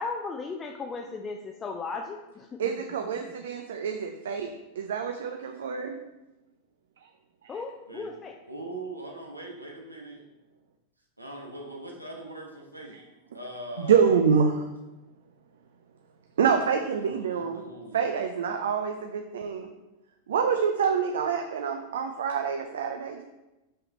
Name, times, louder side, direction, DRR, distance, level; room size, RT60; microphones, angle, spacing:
voice 1, 0.0-2.7 7.5-8.4, left 4 dB, 20° left, 3 dB, 0.5 m, -36 dB
voice 2, 2.6-4.5 4.8-6.0 7.4-7.6 13.8-14.7 16.4-17.6 17.9-19.7 20.3-23.2, right 6 dB, 60° right, 5 dB, 0.5 m, -26 dB
voice 3, 8.5-10.2 11.2-12.9 13.3-14.2 16.9-18.1, right 1 dB, 85° right, 0 dB, 1.2 m, -41 dB
5.5 x 5.5 x 4.1 m, 1.0 s
figure-of-eight pair, 90°, 0 cm